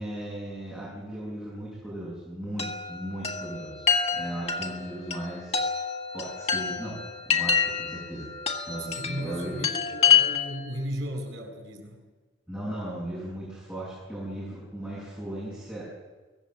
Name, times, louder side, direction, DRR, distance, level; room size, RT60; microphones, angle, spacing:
voice 1, 0.0-3.8 4.1-5.7 6.1-7.0 7.3-8.3 8.7-9.6 12.5-15.9, right 1 dB, 5° right, -8 dB, 7.5 m, -37 dB
Chime, 2.6-10.7, left 7 dB, 30° left, 1.8 m, -27 dB
voice 2, 8.8-12.0, equal, 85° right, 5 dB, 5.4 m, -36 dB
24.5 x 18.0 x 7.6 m, 1.4 s
head